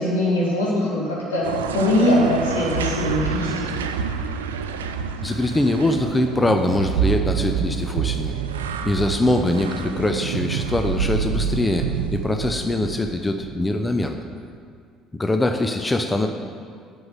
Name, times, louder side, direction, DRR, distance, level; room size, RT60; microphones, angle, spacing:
voice 1, 0.0-1.4 1.7-3.7, left 1 dB, 80° left, -5 dB, 2.1 m, -21 dB
sound 1, 1.4-13.9, right 7 dB, 75° right, 0.4 m, -27 dB
voice 2, 5.2-8.3 8.8-14.2 15.1-16.3, left 2 dB, 15° left, 5 dB, 0.6 m, -23 dB
7.8 x 5.4 x 7.7 m, 2.2 s
figure-of-eight pair, 55°, 0 cm